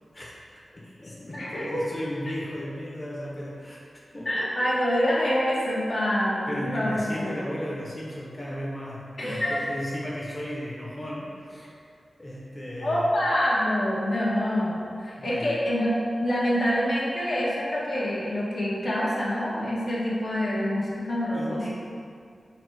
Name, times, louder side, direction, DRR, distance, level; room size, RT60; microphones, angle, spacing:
voice 1, 0.1-3.8 4.1-4.3 6.5-11.7 12.2-13.2 15.2-15.6 21.3-21.7, equal, 30° left, -5 dB, 0.8 m, -35 dB
voice 2, 1.3-1.9 4.3-7.4 9.2-9.7 12.8-21.7, equal, 70° left, -8 dB, 1.0 m, -26 dB
4.0 x 2.2 x 4.4 m, 2.3 s
cardioid pair, 45°, 0 cm